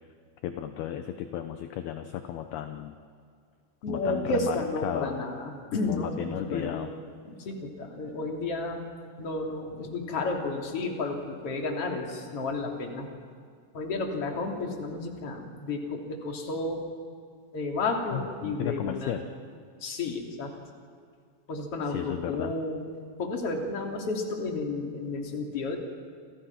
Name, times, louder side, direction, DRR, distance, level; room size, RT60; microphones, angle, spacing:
voice 1, 0.4-3.0 3.9-4.6 4.8-5.2 5.9-6.9 18.1-19.2 21.8-22.5, left 10 dB, 75° left, 7 dB, 2.5 m, -34 dB
voice 2, 3.8-7.0 7.2-8.8 9.2-13.1 13.7-16.8 17.5-19.2 19.8-20.5 21.5-22.8 23.2-25.8, left 3 dB, 35° left, 1 dB, 3.3 m, -32 dB
29.5 x 28.5 x 6.0 m, 2.2 s
omnidirectional pair, 5.7 m